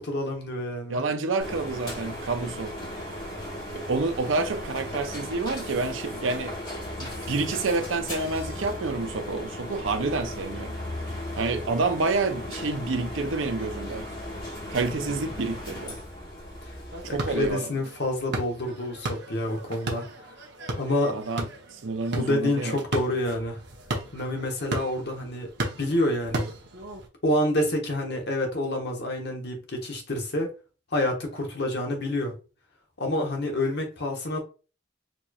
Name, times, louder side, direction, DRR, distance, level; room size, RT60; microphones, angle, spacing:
voice 1, 0.0-1.0 17.1-20.1 20.8-21.2 22.1-23.6 24.1-25.5 25.8-26.5 27.2-30.5 30.9-32.3 33.0-34.4, left 1 dB, 60° left, 1.1 m, -28 dB
voice 2, 0.9-2.7 3.7-6.5 7.0-10.8 11.4-14.0 14.7-16.0 17.1-17.7 21.1-21.4 21.8-22.8, right 3 dB, 80° right, 0.6 m, -28 dB
sound 1, 1.4-17.5, left 1 dB, 25° left, 1.6 m, -36 dB
sound 2, 16.9-27.1, right 1 dB, 60° right, 0.9 m, -36 dB
4.1 x 3.1 x 2.3 m
head